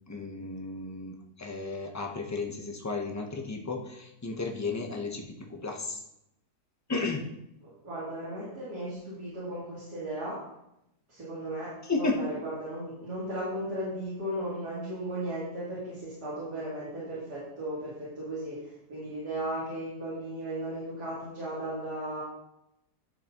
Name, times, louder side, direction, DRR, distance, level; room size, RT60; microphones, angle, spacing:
voice 1, 0.1-5.3 5.6-6.0 6.9-7.2 11.8-12.2, left 3 dB, 15° left, 2 dB, 0.5 m, -33 dB
voice 2, 7.6-10.4 11.1-22.2, right 1 dB, 80° right, -10 dB, 3.5 m, -36 dB
11.0 x 6.7 x 3.0 m, 0.82 s
omnidirectional pair, 1.7 m